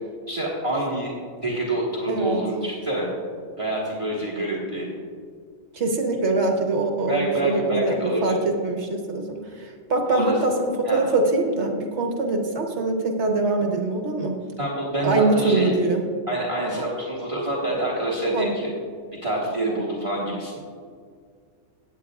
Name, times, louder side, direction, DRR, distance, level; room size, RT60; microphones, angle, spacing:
voice 1, 0.3-1.1 1.4-3.1 3.6-4.9 7.1-8.4 10.1-10.4 10.9-11.0 14.6-15.7 16.3-18.7 19.2-20.6, right 1 dB, 25° right, -5 dB, 1.8 m, -26 dB
voice 2, 2.1-2.4 5.7-14.3 15.0-16.0 16.6-16.9 18.3-18.5, right 2 dB, 60° right, 2 dB, 1.4 m, -23 dB
17.0 x 8.8 x 2.4 m, 2.1 s
omnidirectional pair, 1.3 m